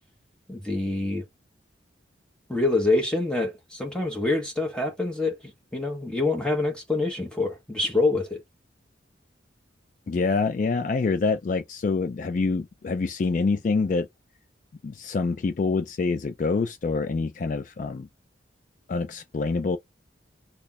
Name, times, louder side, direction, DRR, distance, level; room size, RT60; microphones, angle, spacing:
voice 1, 0.5-1.2 2.5-8.4, left 2 dB, 5° left, 1.3 m, -26 dB
voice 2, 10.1-14.1 14.8-18.1 18.9-19.8, left 4 dB, 45° left, 0.3 m, -26 dB
3.2 x 2.3 x 3.9 m
head